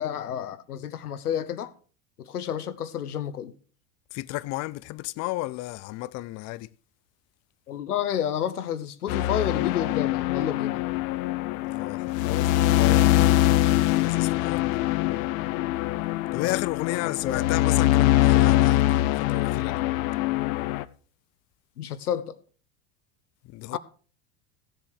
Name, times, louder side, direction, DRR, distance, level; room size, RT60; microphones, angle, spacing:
voice 1, 0.0-1.7 2.2-3.5 7.7-10.8 16.4-16.6 16.8-17.5 21.8-22.4 23.7-23.8, left 9 dB, 90° left, 1.0 m, -30 dB
voice 2, 4.1-6.7 11.7-14.8 16.3-19.8 23.4-23.8, left 19 dB, 40° left, 0.4 m, -33 dB
sound 1, 9.1-20.8, left 14 dB, 65° left, 0.8 m, -23 dB
15.0 x 7.6 x 4.8 m
hypercardioid pair, 85°, 45 cm